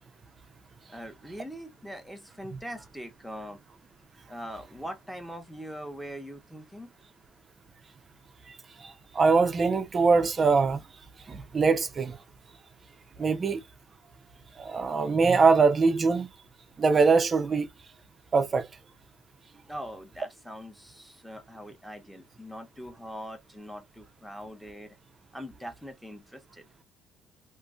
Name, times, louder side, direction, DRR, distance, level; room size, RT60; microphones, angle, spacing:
voice 1, 0.9-3.6 4.3-6.9 19.7-25.0 25.3-26.7, equal, ahead, 0.8 m, -42 dB
voice 2, 8.8-10.8 11.3-12.2 13.2-13.6 14.6-16.3 16.8-17.7 18.3-18.7, right 4 dB, 30° right, 0.4 m, -23 dB
2.5 x 2.5 x 2.3 m
cardioid pair, 120°, 0 cm